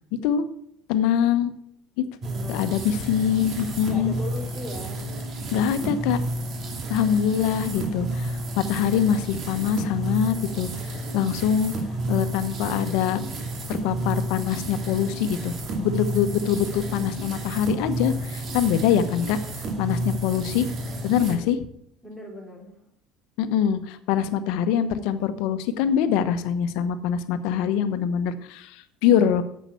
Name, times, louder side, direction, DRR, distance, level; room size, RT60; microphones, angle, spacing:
voice 1, 0.9-1.5 2.0-2.1 2.5-4.1 5.5-6.2 6.9-11.7 12.1-13.2 13.7-19.4 19.8-20.7 21.0-21.6 23.4-29.4, left 9 dB, 75° left, 11 dB, 1.0 m, -24 dB
voice 2, 2.2-2.8 3.9-5.0 21.3-21.5 22.0-22.8, left 1 dB, ahead, 1 dB, 2.9 m, -38 dB
sound 1, 2.2-21.4, right 1 dB, 45° right, 2.4 m, -31 dB
9.0 x 7.4 x 7.0 m, 0.72 s
supercardioid pair, 110°, 0 cm